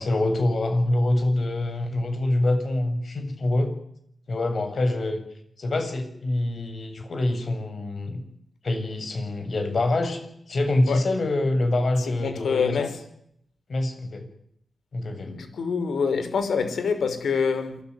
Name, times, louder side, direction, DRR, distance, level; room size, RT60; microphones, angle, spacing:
voice 1, 0.0-3.7 4.3-5.2 5.6-8.2 8.6-12.9 13.7-14.2 14.9-15.3, left 2 dB, 50° left, 7.4 m, -25 dB
voice 2, 12.0-13.0 15.3-17.8, left 5 dB, 80° left, 5.3 m, -26 dB
28.0 x 20.5 x 9.8 m
wide cardioid pair, 125°, 0 cm